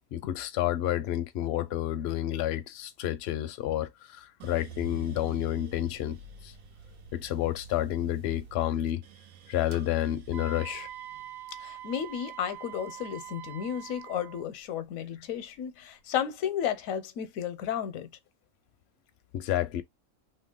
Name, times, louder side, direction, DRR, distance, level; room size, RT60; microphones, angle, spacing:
voice 1, 0.1-6.2 6.4-6.5 7.1-9.0 9.5-10.9 19.3-19.8, left 13 dB, 65° left, 0.7 m, -30 dB
sound 1, 4.4-14.6 15.1-15.8, right 4 dB, 80° right, 1.2 m, -49 dB
Wind instrument woodwind instrument, 10.3-14.4, right 12 dB, 65° right, 0.4 m, -44 dB
voice 2, 11.6-18.1, left 9 dB, 85° left, 1.0 m, -33 dB
2.8 x 2.8 x 3.6 m
omnidirectional pair, 1.4 m